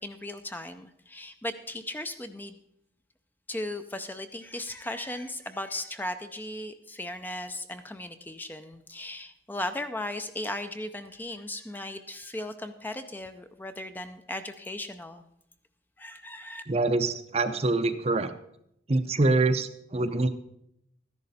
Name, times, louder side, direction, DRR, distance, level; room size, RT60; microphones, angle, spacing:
voice 1, 0.0-2.6 3.5-15.2 16.0-16.6, left 1 dB, 10° left, 9 dB, 0.5 m, -37 dB
voice 2, 16.7-18.3 18.9-20.3, right 2 dB, 35° right, 10 dB, 0.6 m, -25 dB
13.0 x 10.5 x 4.1 m, 0.77 s
head